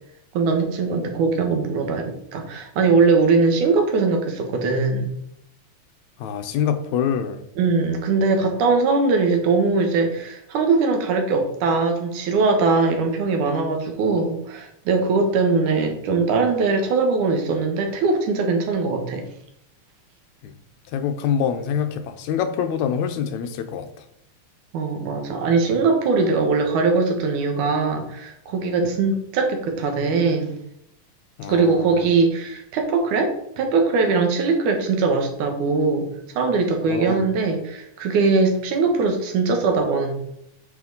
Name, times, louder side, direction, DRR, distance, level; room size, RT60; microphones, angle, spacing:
voice 1, 0.3-2.1 2.3-5.1 7.6-19.2 24.7-30.5 31.5-36.1 36.3-40.1, right 4 dB, 90° right, 4 dB, 2.8 m, -21 dB
voice 2, 6.2-7.5 20.4-20.5 20.9-23.9 31.4-32.1 36.9-37.2, left 8 dB, 80° left, 8 dB, 2.0 m, -25 dB
8.8 x 5.1 x 4.0 m, 0.77 s
omnidirectional pair, 3.4 m